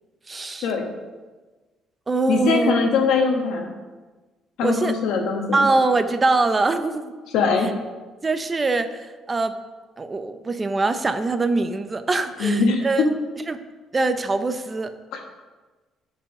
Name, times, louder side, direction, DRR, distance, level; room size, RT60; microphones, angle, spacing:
voice 1, 0.3-0.7 2.1-2.7 4.6-4.9 5.5-7.1 8.2-9.6 10.0-13.1 13.5-13.6 13.9-14.9, right 3 dB, 25° right, 10 dB, 0.5 m, -23 dB
voice 2, 2.3-3.7 4.6-5.7 7.3-7.7 12.4-13.1 15.1-15.2, left 4 dB, 80° left, 3 dB, 1.2 m, -21 dB
7.0 x 4.7 x 5.9 m, 1.3 s
cardioid pair, 105°, 0 cm